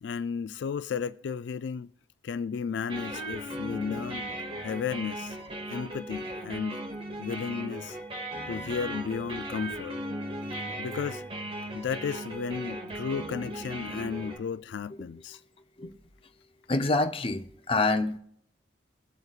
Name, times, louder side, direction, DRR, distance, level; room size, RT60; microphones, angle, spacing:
voice 1, 0.0-1.9 2.2-4.2 4.6-5.4 5.7-6.8 7.2-8.0 8.5-9.9 10.8-15.4, left 6 dB, 80° left, 0.3 m, -34 dB
sound 1, 2.9-14.4, right 1 dB, 30° right, 1.7 m, -37 dB
voice 2, 16.7-18.2, left 2 dB, 30° left, 0.6 m, -26 dB
22.5 x 8.0 x 2.4 m
head